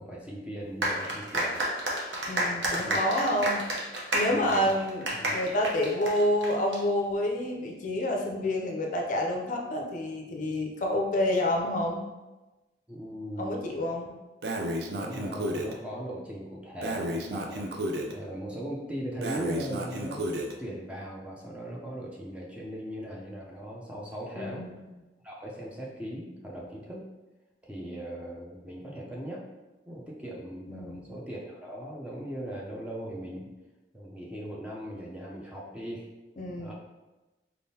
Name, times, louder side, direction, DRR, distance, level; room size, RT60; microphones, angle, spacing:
voice 1, 0.0-1.6 2.8-3.2 4.4-4.7 5.1-5.4 12.9-13.6 14.9-20.3 20.6-24.7 25.2-27.1 27.6-29.5 29.9-33.5 33.9-36.1 36.6-36.7, equal, 5° right, -3 dB, 0.5 m, -39 dB
sound 1, 0.8-6.8, right 1 dB, 90° right, 0.9 m, -30 dB
voice 2, 2.3-3.6 4.1-12.1 13.4-14.1 24.3-24.9 30.7-31.1 36.4-36.7, left 1 dB, 45° left, 1 dB, 0.5 m, -28 dB
Breathing, 14.4-15.7 16.8-18.1 19.2-20.5, equal, 65° right, 0.5 m, -32 dB
4.0 x 3.6 x 2.8 m, 1.1 s
head